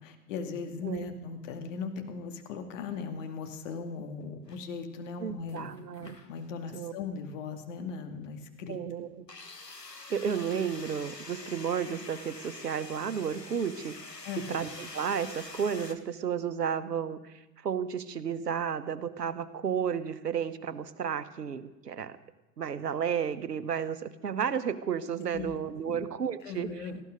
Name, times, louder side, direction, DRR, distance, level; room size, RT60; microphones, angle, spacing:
voice 1, 0.0-5.7 6.0-8.8 14.2-14.7 25.3-25.6 25.8-26.1 26.4-27.0, left 5 dB, 50° left, 6 dB, 2.4 m, -38 dB
sound 1, 4.5-5.1 5.5-6.5 7.2-7.3 9.3-15.9, left 3 dB, 90° left, 1.6 m, -46 dB
voice 2, 5.2-6.2 6.7-6.9 8.7-9.2 10.1-13.9 14.5-17.3 17.6-22.2 22.6-26.7, right 7 dB, 75° right, 11 dB, 1.2 m, -32 dB
19.0 x 15.0 x 5.2 m, 0.99 s
figure-of-eight pair, 95°, 48 cm